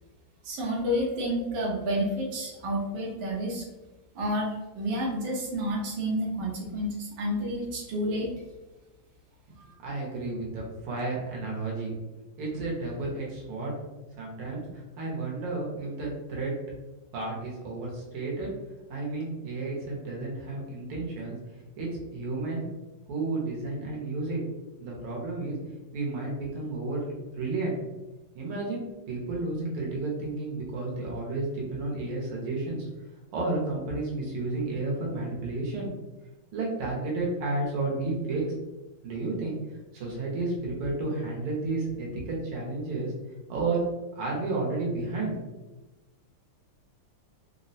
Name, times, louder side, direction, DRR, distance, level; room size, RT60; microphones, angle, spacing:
voice 1, 0.4-3.6 4.1-4.5 4.8-8.3 9.6-9.7, equal, 65° right, -3 dB, 1.5 m, -30 dB
voice 2, 9.8-11.9 12.4-13.7 14.2-14.7 15.0-16.5 17.1-18.5 18.9-21.4 21.8-22.6 23.1-24.4 24.8-25.6 25.9-27.8 28.3-32.8 33.3-35.9 36.5-38.4 39.0-39.6 39.9-43.1 43.5-43.8 44.2-45.4, right 3 dB, 85° right, -3 dB, 1.7 m, -32 dB
3.9 x 2.0 x 2.6 m, 1.1 s
omnidirectional pair, 2.4 m